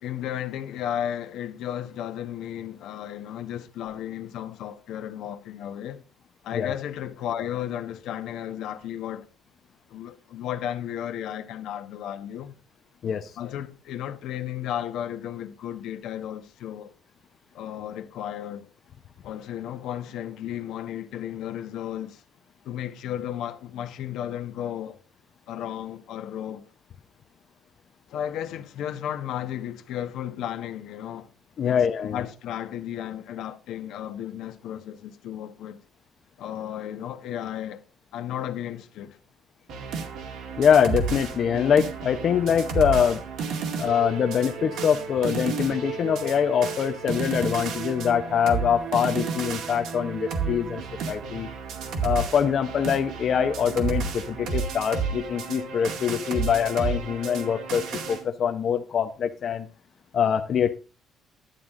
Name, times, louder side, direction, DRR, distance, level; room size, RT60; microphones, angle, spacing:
voice 1, 0.0-6.0 6.4-9.3 9.9-12.5 13.4-16.9 17.5-18.7 19.2-22.2 22.6-25.0 25.5-26.7 28.1-31.3 31.6-35.8 36.4-37.8 38.1-39.2, left 10 dB, 80° left, 1.1 m, -34 dB
voice 2, 31.6-32.2 40.6-43.2 43.8-50.8 51.1-51.5 52.0-59.7 60.1-60.8, left 8 dB, 50° left, 0.7 m, -24 dB
sound 1, 39.7-58.2, right 5 dB, 80° right, 2.1 m, -32 dB
11.5 x 8.9 x 3.7 m
cardioid pair, 120°, 0 cm